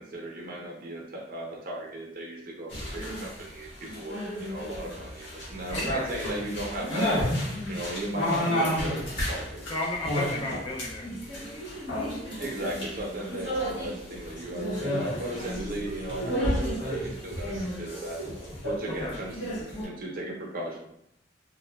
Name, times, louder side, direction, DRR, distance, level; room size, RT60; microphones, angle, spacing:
voice 1, 0.0-7.3 7.7-9.8 12.4-18.2 18.6-20.8, right 1 dB, 50° right, -1 dB, 0.6 m, -36 dB
sound 1, 2.7-19.8, equal, 85° left, 0.8 m, -32 dB
voice 2, 5.7-6.1 9.7-11.2 18.9-19.2, left 1 dB, 25° left, -2 dB, 0.3 m, -33 dB
sound 2, 7.1-9.6, equal, 45° left, 0.8 m, -34 dB
2.9 x 2.1 x 2.2 m, 0.77 s
head